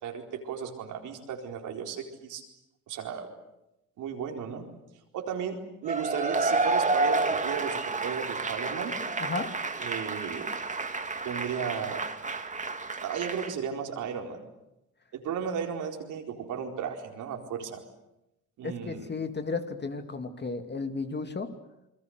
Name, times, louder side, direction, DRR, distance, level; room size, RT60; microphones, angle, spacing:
voice 1, 0.0-2.4 2.9-3.3 4.0-4.6 5.1-8.9 9.8-10.5 11.2-12.1 13.0-14.5 15.1-17.8 18.6-19.1, right 7 dB, 80° right, 3 dB, 4.4 m, -35 dB
Cheering / Applause / Crowd, 5.9-13.5, right 3 dB, 25° right, 2.0 m, -30 dB
voice 2, 18.6-21.5, left 4 dB, 35° left, 7 dB, 2.7 m, -33 dB
28.0 x 22.0 x 8.1 m, 0.89 s
cardioid pair, 80°, 30 cm